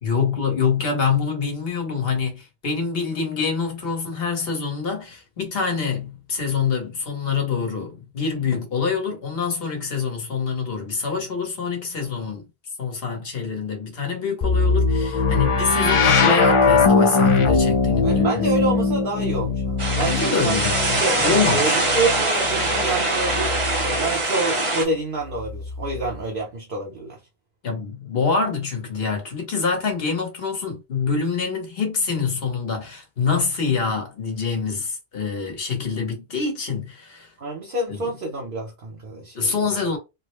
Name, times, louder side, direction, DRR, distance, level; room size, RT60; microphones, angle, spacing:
voice 1, 0.0-12.4 12.8-18.4 20.0-21.8 27.6-37.3 37.9-38.1 39.3-40.0, left 5 dB, 70° left, 1.3 m, -25 dB
sound 1, 14.4-24.2 25.2-26.3, left 4 dB, 45° left, 0.4 m, -21 dB
voice 2, 18.0-20.6 21.0-21.2 21.5-27.2 37.4-39.5, right 2 dB, 60° right, 0.9 m, -28 dB
sound 2, 19.8-24.8, right 2 dB, 35° right, 0.8 m, -23 dB
3.5 x 2.1 x 3.1 m
omnidirectional pair, 1.0 m